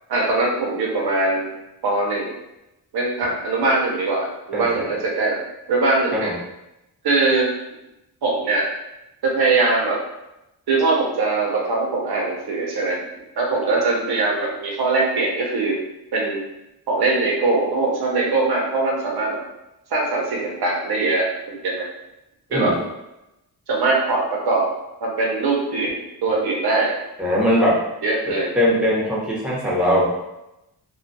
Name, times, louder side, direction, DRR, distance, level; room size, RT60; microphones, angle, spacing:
voice 1, 0.1-1.5 1.8-2.3 2.9-5.4 5.7-6.3 7.0-7.5 8.2-8.7 9.2-10.0 10.7-13.0 13.4-15.8 16.1-16.4 16.9-19.4 19.9-21.8 22.5-22.8 23.7-24.7 25.0-26.9 28.0-28.5, right 3 dB, 65° right, -2 dB, 0.7 m, -21 dB
voice 2, 27.2-27.8 28.5-30.1, equal, ahead, -6 dB, 0.8 m, -20 dB
2.3 x 2.2 x 2.6 m, 0.92 s
cardioid pair, 70°, 40 cm